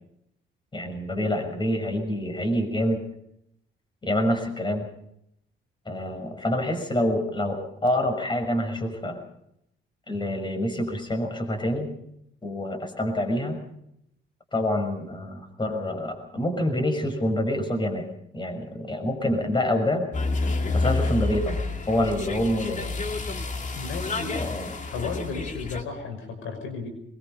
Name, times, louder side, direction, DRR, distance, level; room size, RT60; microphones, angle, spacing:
voice 1, 0.7-3.0 4.0-4.9 5.9-9.2 10.1-11.9 12.4-13.6 14.5-18.1 18.3-20.1 20.7-21.6 21.9-22.9 24.3-24.7, left 1 dB, 25° left, 6 dB, 6.1 m, -26 dB
sound 1, 20.1-25.8, left 3 dB, 40° left, 2.6 m, -29 dB
voice 2, 23.7-24.4 24.9-26.9, left 4 dB, 85° left, 7 dB, 5.7 m, -34 dB
23.0 x 22.0 x 5.5 m, 0.77 s
cardioid pair, 90°, 20 cm